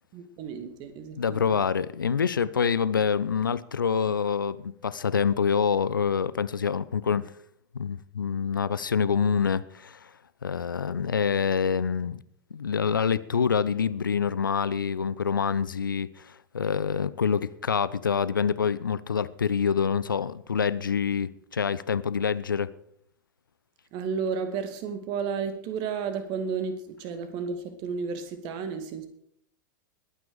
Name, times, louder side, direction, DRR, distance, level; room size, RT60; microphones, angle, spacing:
voice 1, 0.1-1.6 23.9-29.1, right 6 dB, 45° right, 2.2 m, -32 dB
voice 2, 1.2-7.3 7.7-10.1 10.4-12.2 12.5-22.7, left 6 dB, 75° left, 0.6 m, -26 dB
21.0 x 9.3 x 5.0 m
figure-of-eight pair, 90°, 11 cm